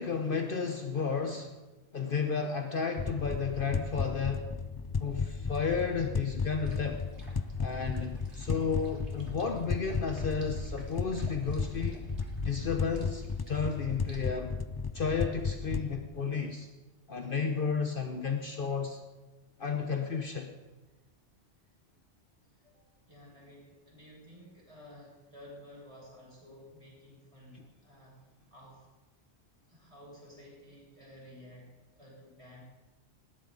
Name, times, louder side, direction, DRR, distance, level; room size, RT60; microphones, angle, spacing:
voice 1, 0.0-1.5 1.9-4.5 5.0-7.0 7.6-12.0 12.4-14.5 14.9-16.7 17.1-19.0 19.6-20.5, left 5 dB, 50° left, 4 dB, 1.2 m, -32 dB
sound 1, 3.0-15.9, left 5 dB, 30° left, 0.4 m, -35 dB
sound 2, 6.5-14.3, right 2 dB, 75° right, 3.1 m, -48 dB
voice 2, 22.5-28.9 29.7-32.6, left 1 dB, 25° right, -5 dB, 7.2 m, -53 dB
20.5 x 17.0 x 4.0 m, 1.2 s
omnidirectional pair, 1.2 m